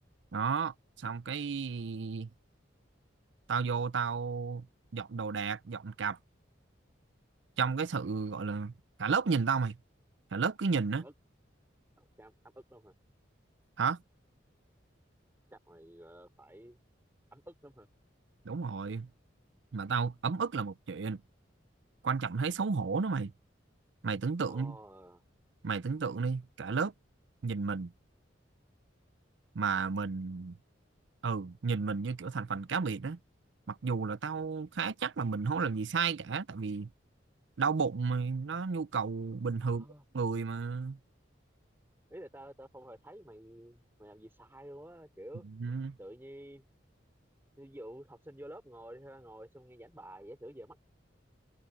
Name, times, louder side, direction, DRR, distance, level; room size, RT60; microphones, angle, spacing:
voice 1, 0.3-2.3 3.5-4.7 4.9-6.2 7.6-8.7 9.0-9.8 10.3-11.0 13.8-14.0 18.5-19.1 19.7-21.2 22.0-23.3 24.0-24.8 25.6-26.9 27.4-27.9 29.5-30.6 31.2-33.2 33.7-36.9 37.6-39.9 40.1-41.0 45.6-46.0, right 5 dB, 70° right, 0.5 m, -32 dB
voice 2, 12.0-12.9 15.5-16.8 17.3-17.9 24.5-25.2 39.6-40.0 42.1-45.5 46.0-46.7 47.6-50.8, right 1 dB, 10° right, 3.7 m, -50 dB
head